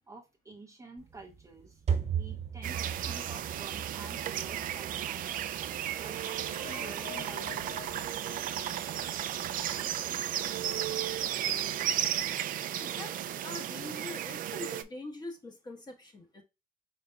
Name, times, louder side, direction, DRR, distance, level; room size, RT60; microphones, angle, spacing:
voice 1, 0.1-1.8 2.1-5.3 6.0-8.0, right 3 dB, 20° right, 1 dB, 0.8 m, -50 dB
sound 1, 1.0-12.3, right 7 dB, 40° right, 1.1 m, -40 dB
sound 2, 2.6-14.8, right 11 dB, 55° right, 0.4 m, -34 dB
sound 3, 6.5-10.2 10.5-10.6 10.8-10.9 11.5-11.6, left 6 dB, 60° left, 1.1 m, -49 dB
voice 2, 12.8-13.1 13.4-16.4, left 2 dB, 25° left, 4 dB, 1.2 m, -43 dB
5.1 x 4.1 x 2.3 m, 0.25 s
cardioid pair, 110°, 17 cm